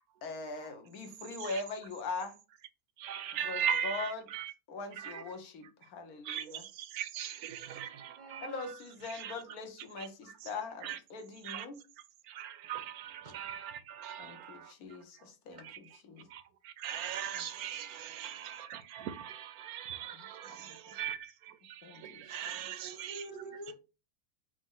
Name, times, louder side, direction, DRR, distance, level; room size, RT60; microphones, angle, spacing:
voice 1, 0.2-2.4 3.4-4.2 4.7-6.6 8.4-11.8 14.2-16.3 17.3-17.5 20.1-20.9 21.8-22.7, left 3 dB, 90° left, 1.3 m, -42 dB
voice 2, 3.0-4.5 5.0-5.2 6.2-8.7 9.1-9.4 10.0-10.1 10.8-11.0 11.4-11.7 12.2-14.7 15.6-15.8 16.3-23.2, right 9 dB, 90° right, 1.1 m, -39 dB
voice 3, 8.2-8.5 13.2-13.3 22.8-23.7, right 2 dB, 50° right, 0.6 m, -46 dB
5.0 x 2.0 x 3.7 m
omnidirectional pair, 1.5 m